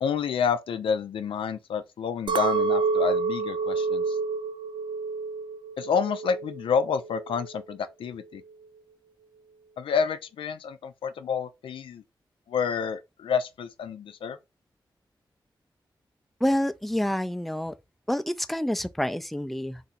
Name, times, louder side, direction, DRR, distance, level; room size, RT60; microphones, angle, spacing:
voice 1, 0.0-4.2 5.8-8.4 9.8-12.0 12.5-14.4, left 6 dB, 90° left, 0.4 m, -29 dB
Chink clink, 2.3-6.7 7.0-7.6, right 4 dB, 65° right, 0.4 m, -28 dB
voice 2, 16.4-17.7 18.1-19.8, left 1 dB, ahead, 0.4 m, -27 dB
2.8 x 2.6 x 4.0 m
cardioid pair, 45°, 9 cm